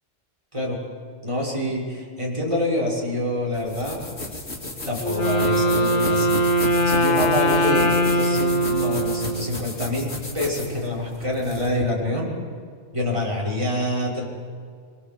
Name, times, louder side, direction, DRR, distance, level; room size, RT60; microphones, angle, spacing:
voice 1, 1.2-4.0 4.8-12.3 12.9-14.2, left 1 dB, 25° right, -4 dB, 6.1 m, -26 dB
sound 1, 3.5-11.8, left 1 dB, 65° left, 2.9 m, -34 dB
Wind instrument woodwind instrument, 5.0-9.9, equal, 90° left, 1.4 m, -21 dB
24.5 x 22.5 x 7.8 m, 2.1 s
omnidirectional pair, 1.2 m